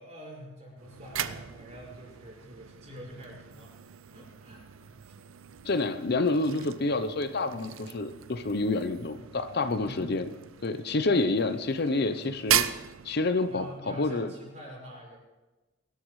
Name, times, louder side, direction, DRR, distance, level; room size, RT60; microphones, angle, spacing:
voice 1, 0.0-3.7 4.1-5.1 9.6-10.3 13.5-15.2, equal, 35° right, -4 dB, 5.5 m, -46 dB
sound 1, 0.8-13.8, right 11 dB, 80° right, 0.6 m, -37 dB
voice 2, 5.6-10.3 10.6-12.7 13.0-14.3, left 2 dB, 50° left, 10 dB, 0.7 m, -28 dB
23.0 x 12.0 x 3.2 m, 1.2 s
head